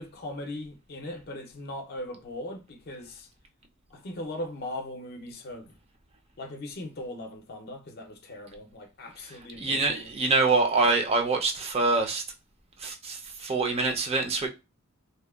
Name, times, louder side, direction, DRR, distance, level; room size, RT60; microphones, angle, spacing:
voice 1, 0.0-3.3 3.9-5.7 6.4-10.1, left 1 dB, 50° left, 0.5 m, -39 dB
voice 2, 9.6-12.2 12.8-14.5, right 3 dB, 30° right, 0.4 m, -25 dB
2.7 x 2.1 x 2.2 m
head